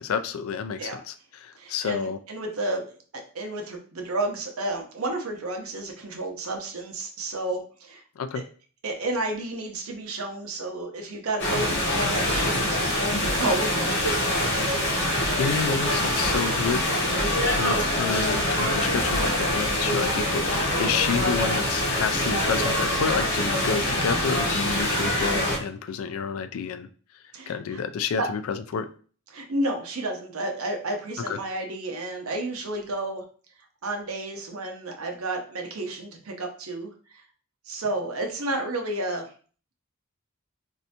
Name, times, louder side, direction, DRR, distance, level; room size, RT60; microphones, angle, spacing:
voice 1, 0.0-2.2 8.2-8.4 15.1-16.9 17.6-26.9 27.5-28.9 31.3-31.4, left 6 dB, 75° left, 10 dB, 0.3 m, -29 dB
voice 2, 1.6-8.0 8.8-14.0 27.3-27.8 28.2-28.3 29.3-33.2 33.8-37.2 37.7-39.2, right 2 dB, 85° right, 3 dB, 0.8 m, -31 dB
sound 1, 11.4-25.6, left 1 dB, 60° left, 1.0 m, -24 dB
3.2 x 2.6 x 2.8 m, 0.41 s
head